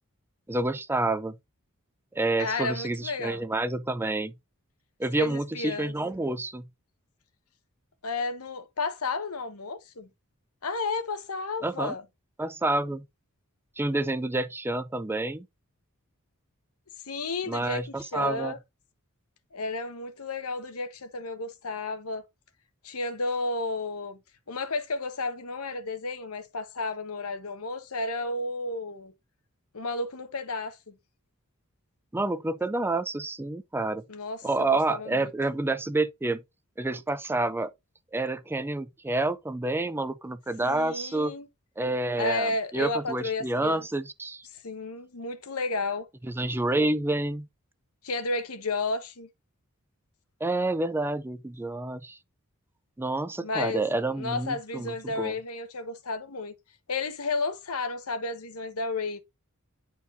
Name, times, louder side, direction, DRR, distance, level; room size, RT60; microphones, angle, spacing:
voice 1, 0.5-1.4 2.1-4.3 5.0-6.7 11.6-11.9 12.4-13.0 13.8-15.5 17.5-18.5 32.1-34.0 34.4-36.4 36.8-37.7 38.1-41.3 41.8-44.4 46.2-47.5 50.4-52.2 53.0-55.3, right 2 dB, 10° right, 0.4 m, -28 dB
voice 2, 2.4-3.4 5.1-5.9 8.0-10.1 10.6-12.0 17.0-18.6 19.5-22.2 22.8-24.2 24.5-29.1 29.7-30.9 34.1-35.3 40.6-41.5 42.2-43.8 44.5-46.1 48.0-49.3 53.4-53.8 54.1-56.6 56.9-59.2, left 3 dB, 90° left, 1.2 m, -32 dB
10.0 x 4.5 x 2.6 m
head